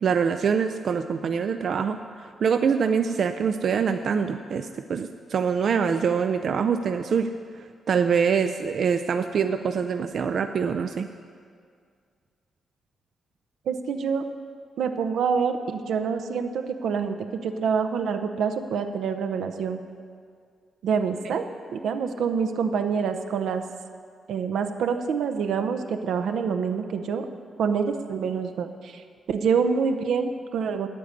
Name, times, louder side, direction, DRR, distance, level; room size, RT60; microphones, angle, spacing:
voice 1, 0.0-7.3 7.9-11.1 21.2-21.3, right 6 dB, 55° right, 8 dB, 0.4 m, -24 dB
voice 2, 13.7-14.3 14.8-19.8 20.8-23.6 24.3-27.3 27.6-30.9, right 6 dB, 85° right, 7 dB, 0.7 m, -26 dB
9.7 x 8.5 x 7.9 m, 2.1 s
wide cardioid pair, 135°, 0 cm